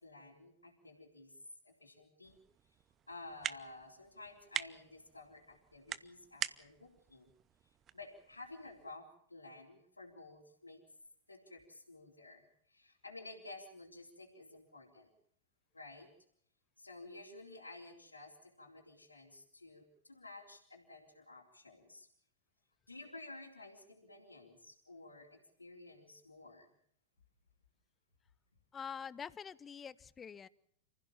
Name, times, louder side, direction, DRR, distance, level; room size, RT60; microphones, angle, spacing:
voice 1, 0.0-2.4 3.1-7.3 7.9-10.8 11.3-15.1 15.7-16.1 16.8-22.1 22.9-26.7, left 2 dB, 80° left, -3 dB, 3.8 m, -53 dB
sound 1, 2.2-9.0, right 9 dB, 25° right, 0.8 m, -46 dB
voice 2, 28.7-30.5, left 7 dB, 20° left, 20 dB, 0.9 m, -46 dB
29.0 x 15.5 x 7.3 m, 0.67 s
figure-of-eight pair, 90°, 0 cm